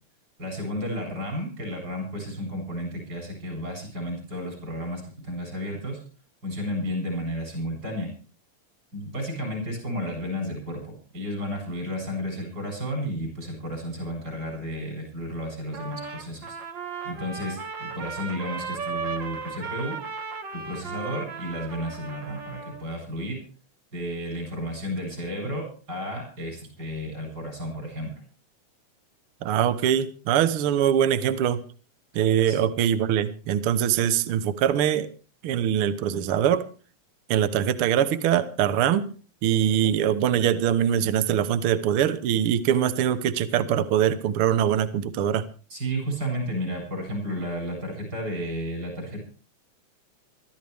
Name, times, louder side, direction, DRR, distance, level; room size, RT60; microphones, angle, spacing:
voice 1, 0.4-6.0 6.4-8.1 8.9-16.6 17.0-20.0 20.5-23.4 23.9-28.1 32.5-32.6 45.7-49.2, equal, 30° right, 2 dB, 8.7 m, -32 dB
Trumpet, 15.7-22.9, right 5 dB, 45° right, 1.7 m, -36 dB
voice 2, 29.4-31.6 32.1-35.1 35.4-36.6 37.3-39.1 39.4-45.4, right 9 dB, 65° right, 12 dB, 1.5 m, -23 dB
23.5 x 14.0 x 3.5 m, 0.38 s
omnidirectional pair, 3.5 m